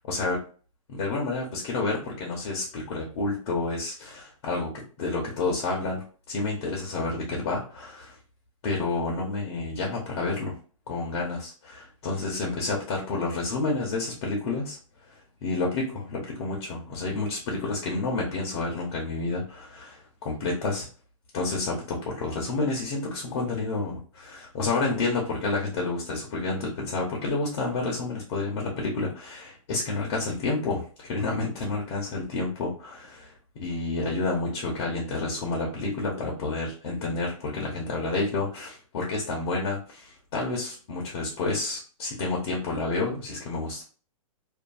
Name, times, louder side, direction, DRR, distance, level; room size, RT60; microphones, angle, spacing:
voice 1, 0.1-0.4 0.9-4.7 5.0-8.1 8.6-10.5 10.9-14.8 15.4-20.9 21.3-43.8, left 3 dB, 50° left, -2 dB, 0.9 m, -29 dB
2.6 x 2.5 x 2.3 m, 0.40 s
hypercardioid pair, 150°, 18 cm